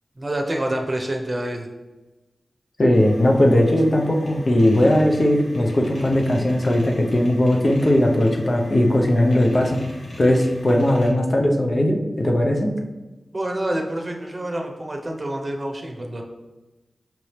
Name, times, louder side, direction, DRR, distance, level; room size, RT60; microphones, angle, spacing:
voice 1, 0.2-1.7 13.3-16.2, right 1 dB, 35° right, 2 dB, 0.8 m, -27 dB
voice 2, 2.8-9.8 10.2-12.7, left 1 dB, 45° left, 1 dB, 0.7 m, -18 dB
sound 1, 2.9-11.1, left 1 dB, 75° left, 1.2 m, -42 dB
5.9 x 2.7 x 3.2 m, 1.1 s
cardioid pair, 45°, 0 cm